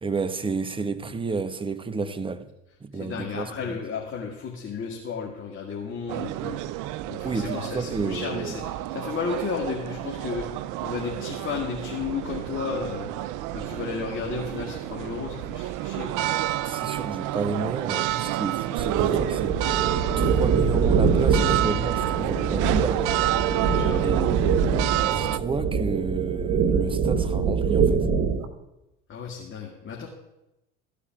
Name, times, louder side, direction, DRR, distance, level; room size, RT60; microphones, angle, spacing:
voice 1, 0.0-2.5 2.8-3.8 7.2-8.6 16.7-19.6 20.2-23.0 24.0-28.1, right 4 dB, 15° right, 0.9 m, -31 dB
voice 2, 2.9-13.1 13.5-16.2 23.6-24.0 29.1-30.1, left 5 dB, 35° left, 2.1 m, -33 dB
sound 1, 6.1-25.4, right 14 dB, 55° right, 0.6 m, -30 dB
sound 2, 18.8-28.5, right 6 dB, 40° right, 1.6 m, -23 dB
14.5 x 4.9 x 8.9 m
hypercardioid pair, 75°, 37 cm